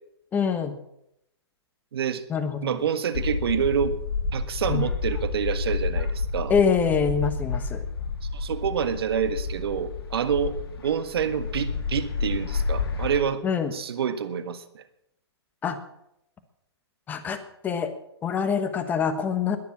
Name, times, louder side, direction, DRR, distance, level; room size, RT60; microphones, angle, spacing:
voice 1, 0.3-0.7 2.3-2.8 4.7-4.9 6.5-7.8 13.4-13.7 15.6-15.8 17.1-17.9 18.2-19.6, left 6 dB, 10° left, 8 dB, 1.2 m, -25 dB
voice 2, 1.9-2.2 2.6-3.9 4.3-6.5 8.3-13.4 13.7-14.8, right 7 dB, 60° right, 11 dB, 1.6 m, -27 dB
sound 1, 3.1-13.2, left 4 dB, 60° left, 3.5 m, -30 dB
21.0 x 7.3 x 7.2 m, 0.80 s
hypercardioid pair, 150°, 14 cm